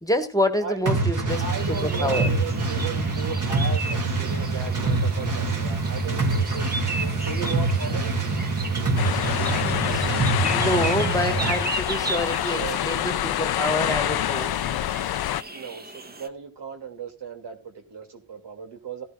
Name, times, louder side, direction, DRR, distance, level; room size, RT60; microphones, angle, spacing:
voice 1, 0.0-1.4 1.8-2.3 9.4-14.5, left 1 dB, 10° left, 1.5 m, -27 dB
voice 2, 0.6-8.2 12.0-12.8 15.5-19.0, right 5 dB, 85° right, 2.6 m, -36 dB
sound 1, 0.9-11.6, right 3 dB, 50° right, 2.4 m, -25 dB
sound 2, 1.3-16.3, right 2 dB, 25° right, 1.1 m, -36 dB
sound 3, 9.0-15.4, left 12 dB, 65° left, 0.5 m, -26 dB
16.5 x 11.5 x 2.4 m
cardioid pair, 80°, 40 cm